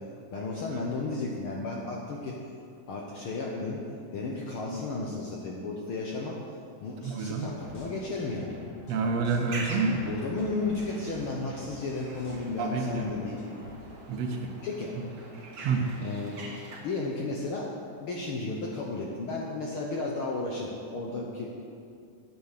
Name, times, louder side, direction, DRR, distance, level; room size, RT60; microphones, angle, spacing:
voice 1, 0.3-2.4 2.9-3.8 4.1-6.4 6.8-8.5 9.7-13.4 14.6-15.0 16.0-21.5, left 3 dB, 75° left, -2 dB, 1.2 m, -34 dB
voice 2, 7.0-7.5 8.9-10.0 12.6-13.1 14.1-14.5 15.0-15.1 15.6-15.9, right 4 dB, 70° right, 1 dB, 1.7 m, -29 dB
sound 1, 7.4-13.8, left 1 dB, 40° left, 2.3 m, -47 dB
sound 2, 9.4-16.8, right 2 dB, 50° right, 1.1 m, -44 dB
9.2 x 8.9 x 6.6 m, 2.4 s
omnidirectional pair, 3.8 m